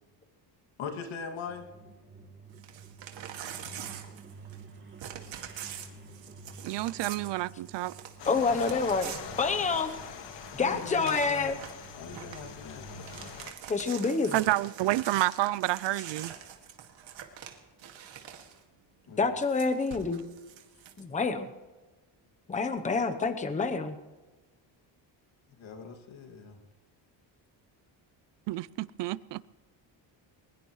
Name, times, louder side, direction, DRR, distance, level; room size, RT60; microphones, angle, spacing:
voice 1, 0.8-1.7 10.6-11.6 11.9-13.0 19.1-19.2 25.6-26.6, left 6 dB, 85° left, 4 dB, 2.4 m, -41 dB
sound 1, 1.5-13.3, right 4 dB, 25° right, 2.7 m, -51 dB
Crumpling crinkling / Tearing, 2.5-4.7 5.0-10.1 10.5-10.6 10.8-11.8 12.1-12.5 12.9-18.6 19.4-21.0, right 9 dB, 85° right, 2.2 m, -44 dB
voice 2, 6.6-7.9 14.3-16.3 28.5-29.5, right 16 dB, 70° right, 21 dB, 0.5 m, -29 dB
sound 2, 8.2-13.5, left 7 dB, 70° left, 1.9 m, -43 dB
voice 3, 8.3-9.1 9.4-9.9 10.5-11.6 13.7-14.3 19.2-20.2 21.0-21.5 22.5-24.0, left 4 dB, 15° left, 8 dB, 0.8 m, -27 dB
22.0 x 20.5 x 3.2 m, 1.2 s
cardioid pair, 170°, 45 cm